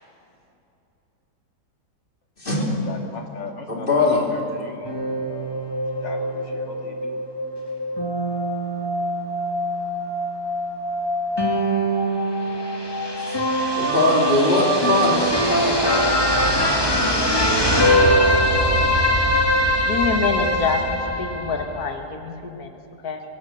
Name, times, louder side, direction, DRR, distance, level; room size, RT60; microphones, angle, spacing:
voice 1, 2.7-5.6 6.0-7.2, left 4 dB, 90° left, 3 dB, 2.6 m, -38 dB
voice 2, 3.7-4.2 13.8-16.1 16.8-17.4, left 2 dB, 30° left, -3 dB, 3.9 m, -21 dB
sound 1, 4.8-21.9, equal, 15° left, 2.2 m, -22 dB
voice 3, 19.5-23.2, left 5 dB, 60° left, 4 dB, 2.1 m, -27 dB
25.0 x 17.0 x 7.2 m, 2.8 s
omnidirectional pair, 1.9 m